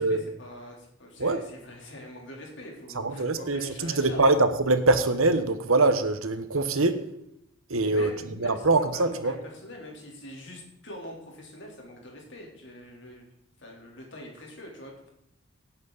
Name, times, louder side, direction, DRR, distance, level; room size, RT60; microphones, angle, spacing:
voice 1, 0.0-4.2 7.8-8.7 8.9-13.3 13.6-15.1, left 1 dB, 55° left, -1 dB, 3.6 m, -44 dB
voice 2, 2.9-7.1 7.7-8.1 8.4-9.4, right 2 dB, 75° right, 10 dB, 1.2 m, -23 dB
17.5 x 8.5 x 4.1 m, 0.77 s
head